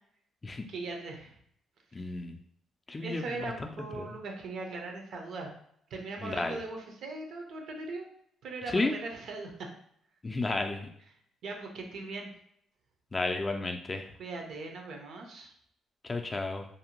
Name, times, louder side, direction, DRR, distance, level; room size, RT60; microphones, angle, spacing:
voice 1, 0.7-1.4 3.0-5.5 5.9-8.1 8.4-9.7 11.4-12.3 14.2-15.5, right 3 dB, 70° right, 2 dB, 0.6 m, -39 dB
voice 2, 1.9-2.3 2.9-3.3 3.6-3.7 4.0-4.1 6.2-6.6 8.7-8.9 10.2-10.9 13.1-14.1 16.0-16.7, left 2 dB, 25° left, 5 dB, 0.3 m, -32 dB
2.6 x 2.1 x 2.9 m, 0.68 s
cardioid pair, 90°, 0 cm